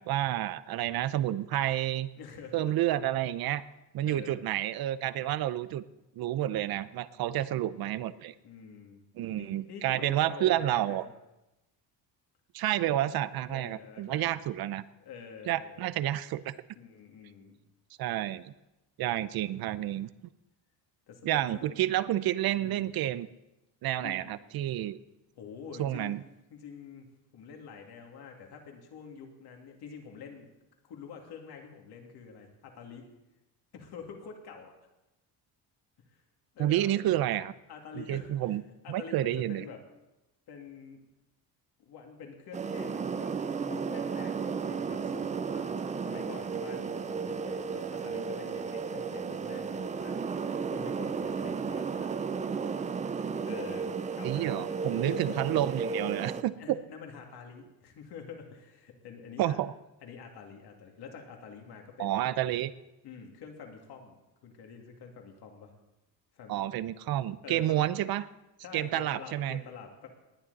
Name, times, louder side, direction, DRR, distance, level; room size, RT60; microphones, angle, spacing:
voice 1, 0.0-2.1 2.5-3.6 3.9-5.8 6.2-8.3 9.2-11.0 12.5-14.8 15.5-16.5 18.0-18.5 19.0-20.1 21.2-23.3 23.8-25.0 25.8-26.2 36.6-37.5 37.9-38.6 38.9-39.6 54.2-56.8 59.4-59.7 62.0-62.7 66.5-68.3 68.7-69.6, right 13 dB, 60° right, 16 dB, 0.7 m, -30 dB
voice 2, 2.1-2.7 4.1-4.4 8.4-9.0 9.3-11.1 13.5-14.4 15.0-15.9 16.7-17.6 21.1-21.7 22.6-22.9 24.0-24.4 25.3-26.2 26.5-27.1 27.3-30.5 30.9-33.1 33.7-34.7 36.5-36.9 37.7-38.6 38.8-39.8 40.5-41.0 41.9-50.3 50.7-52.2 53.4-55.5 56.5-59.6 60.0-62.3 63.0-64.2 64.4-65.7 66.3-66.6 67.4-67.9 68.6-70.1, left 6 dB, 65° left, 2 dB, 2.6 m, -47 dB
sound 1, 42.5-56.4, right 5 dB, 20° right, 0.4 m, -34 dB
19.0 x 10.5 x 4.1 m, 0.97 s
cardioid pair, 130°, 42 cm